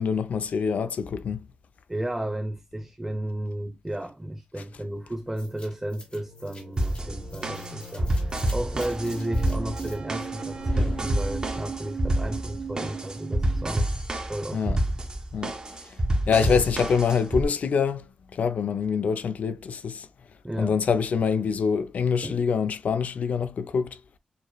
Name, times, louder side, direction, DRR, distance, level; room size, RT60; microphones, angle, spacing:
voice 1, 0.0-1.5 14.5-14.8 15.3-15.5 15.8-16.0 16.3-20.1 20.6-24.0, left 6 dB, 80° left, 0.6 m, -25 dB
voice 2, 1.9-13.9 14.3-14.8 16.4-16.6 20.4-20.8 22.2-22.4, right 1 dB, 10° right, 0.6 m, -33 dB
sound 1, 5.4-11.7, left 2 dB, 45° left, 2.3 m, -43 dB
sound 2, 6.8-17.4, right 1 dB, 30° right, 1.6 m, -28 dB
sound 3, 8.6-13.8, right 6 dB, 50° right, 0.4 m, -38 dB
6.9 x 3.1 x 2.3 m
wide cardioid pair, 115°, 3 cm